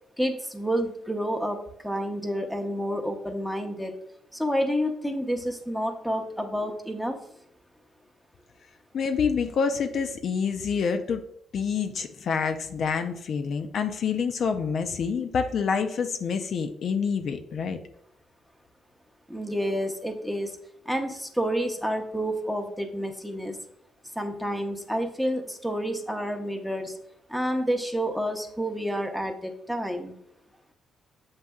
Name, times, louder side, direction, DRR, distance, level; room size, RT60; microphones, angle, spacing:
voice 1, 0.2-1.6 1.8-4.0 4.3-7.2 19.3-20.6 20.9-23.6 24.2-27.0 27.3-30.1, equal, ahead, 3 dB, 0.6 m, -29 dB
voice 2, 8.9-11.2 11.5-17.8, left 6 dB, 60° left, 7 dB, 0.4 m, -27 dB
7.2 x 2.6 x 2.3 m, 0.73 s
cardioid pair, 90°, 0 cm